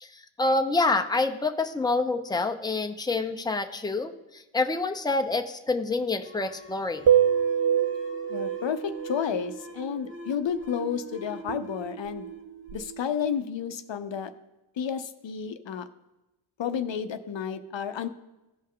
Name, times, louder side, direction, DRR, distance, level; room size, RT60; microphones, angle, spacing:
voice 1, 0.0-7.0, left 3 dB, 10° left, 6 dB, 0.7 m, -27 dB
sound 1, 6.2-13.4, right 2 dB, 25° right, 1.3 m, -43 dB
sound 2, 7.1-9.3 11.5-13.0, right 9 dB, 55° right, 0.6 m, -26 dB
voice 2, 8.3-12.3 12.7-14.3 14.8-15.8 16.6-18.1, left 7 dB, 65° left, 9 dB, 0.7 m, -31 dB
16.0 x 5.4 x 3.8 m, 1.0 s
cardioid pair, 55°, 49 cm